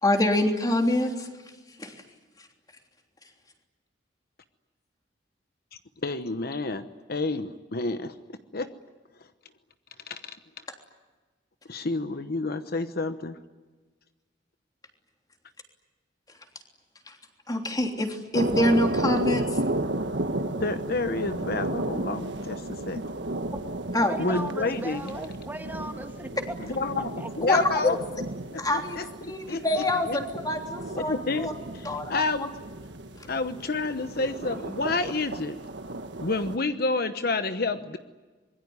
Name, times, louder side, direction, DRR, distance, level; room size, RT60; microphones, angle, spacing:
voice 1, 0.0-1.3 1.8-1.9 17.5-19.4 23.9-24.1 27.5-28.0 28.6-31.5 31.8-32.2, left 1 dB, 20° left, 3 dB, 3.3 m, -25 dB
voice 2, 6.0-8.1 8.5-8.7 10.1-10.3 11.7-13.4 20.4-23.0 24.2-25.1 26.6-27.1 27.4-28.0 28.5-30.2 30.9-32.5 33.3-35.6 36.2-38.0, left 3 dB, 55° left, 10 dB, 1.0 m, -29 dB
sound 1, 18.3-36.6, right 2 dB, 70° right, 1.5 m, -33 dB
voice 3, 24.0-26.6 27.0-27.6, right 1 dB, 10° right, 5 dB, 2.0 m, -37 dB
25.5 x 22.0 x 9.7 m, 1.3 s
head